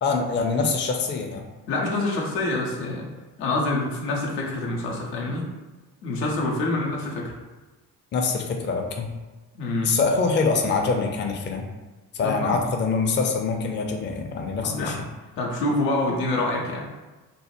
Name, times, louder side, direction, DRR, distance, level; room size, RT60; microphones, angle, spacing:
voice 1, 0.0-1.4 8.1-9.1 9.8-11.6 12.1-15.0, left 4 dB, 25° left, 2 dB, 0.5 m, -24 dB
voice 2, 1.7-3.1 3.4-5.5 6.0-7.3 9.6-10.0 12.2-12.6 14.6-15.0 15.4-16.8, left 2 dB, 80° left, -2 dB, 0.6 m, -26 dB
3.2 x 2.1 x 2.9 m, 1.2 s
figure-of-eight pair, 40°, 49 cm